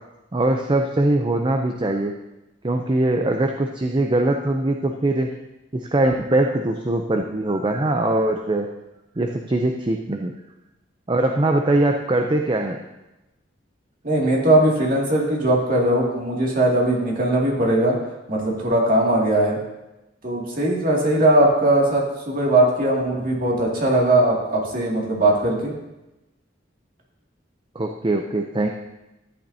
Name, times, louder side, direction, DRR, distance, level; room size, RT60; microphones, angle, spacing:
voice 1, 0.3-2.1 2.6-5.3 5.7-8.7 9.2-10.4 11.1-12.8 27.7-28.7, right 2 dB, 25° right, 3 dB, 0.5 m, -22 dB
voice 2, 14.0-18.0 18.3-19.6 20.2-25.7, right 1 dB, 45° right, -3 dB, 2.3 m, -19 dB
13.5 x 8.7 x 2.8 m, 0.98 s
head